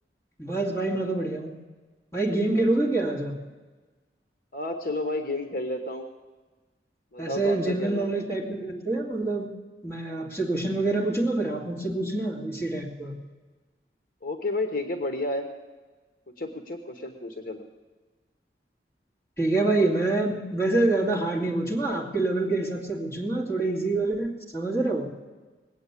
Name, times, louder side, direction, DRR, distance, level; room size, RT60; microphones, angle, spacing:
voice 1, 0.4-1.6 2.1-3.4 7.2-9.5 9.8-13.1 19.4-25.1, right 2 dB, 15° left, -3 dB, 2.2 m, -26 dB
voice 2, 4.5-6.1 7.1-8.1 14.2-15.5 16.4-17.6, left 2 dB, 50° left, 5 dB, 1.1 m, -31 dB
20.0 x 8.3 x 8.3 m, 1.3 s
head